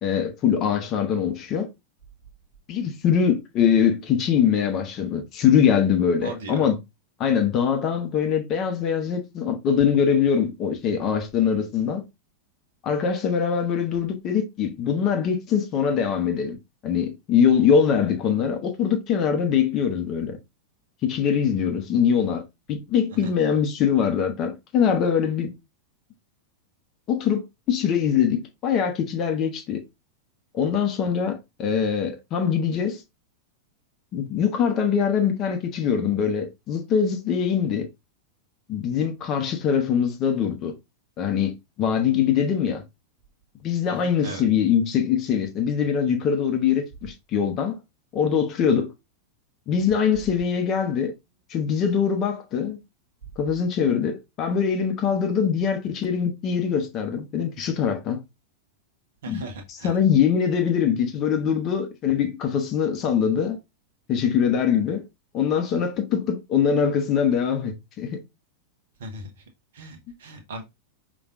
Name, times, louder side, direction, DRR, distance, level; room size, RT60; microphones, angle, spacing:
voice 1, 0.0-1.7 2.7-6.8 7.2-12.0 12.8-16.6 16.8-20.4 21.0-22.4 22.7-25.5 27.1-29.8 30.5-33.0 34.1-37.9 38.7-40.7 41.2-42.8 43.6-47.8 48.1-48.9 49.7-51.1 51.5-52.8 53.4-58.2 59.3-63.6 64.1-65.0 65.3-68.2, left 7 dB, 35° left, 0.9 m, -23 dB
voice 2, 6.2-6.6 43.9-44.4 59.2-60.0 69.0-69.3 69.7-70.6, right 2 dB, 60° right, 1.1 m, -37 dB
5.0 x 3.1 x 2.6 m
figure-of-eight pair, 90°, 0 cm